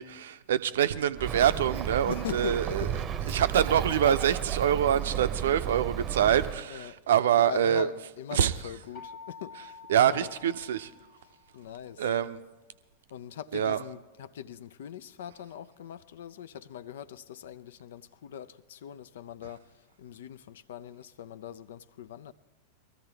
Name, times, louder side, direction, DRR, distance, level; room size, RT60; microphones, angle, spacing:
voice 1, 0.0-2.9 3.3-7.9 8.3-8.5 9.9-10.9 12.0-12.4 13.5-13.8, right 9 dB, 60° right, 0.5 m, -25 dB
Bird, 1.2-6.6, right 9 dB, 25° right, 0.8 m, -33 dB
voice 2, 2.1-3.0 6.7-7.0 7.4-10.3 11.2-12.1 13.1-22.3, left 9 dB, 60° left, 0.5 m, -42 dB
sound 1, 9.0-11.7, left 4 dB, 40° left, 1.0 m, -48 dB
22.5 x 14.0 x 3.4 m
figure-of-eight pair, 90°, 0 cm